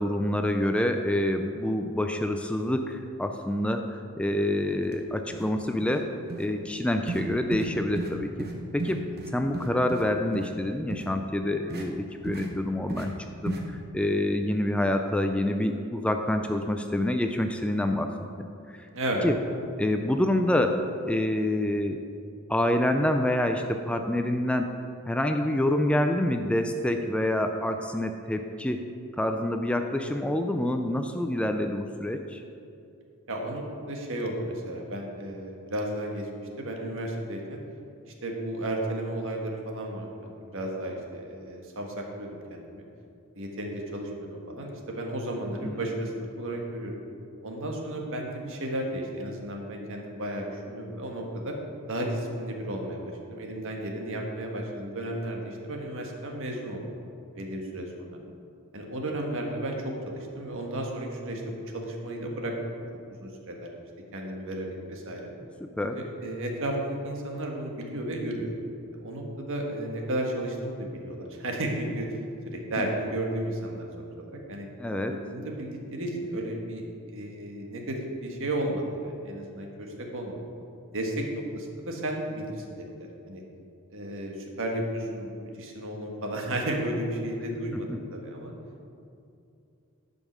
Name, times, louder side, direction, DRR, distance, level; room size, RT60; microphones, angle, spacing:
voice 1, 0.0-6.1 6.4-8.5 8.7-13.1 13.4-18.1 18.7-18.8 19.2-19.4 19.8-22.0 22.5-24.7 25.1-28.8 29.2-32.4 45.6-45.8 65.8-66.0 74.8-75.1, left 1 dB, 5° left, 5 dB, 0.3 m, -27 dB
sound 1, 4.8-4.9 5.3-5.5 5.8-6.0 6.3-6.5 7.1-7.2 7.5-7.7 8.0-8.1 8.4-8.5 8.8-10.0 10.3-10.5 10.9-11.1 11.7-11.8 12.2-12.5 12.9-13.1 13.4-13.6, right 2 dB, 45° right, 1.1 m, -34 dB
voice 2, 18.9-19.2 33.3-37.6 38.2-42.8 43.3-46.9 47.4-51.5 51.9-56.8 57.3-58.2 58.7-62.5 63.2-63.7 64.1-65.3 65.8-68.5 69.0-72.2 72.4-74.7 75.1-80.4 80.9-83.4 83.9-88.5, right 1 dB, 65° right, 1 dB, 1.4 m, -33 dB
10.5 x 5.5 x 6.1 m, 2.5 s
head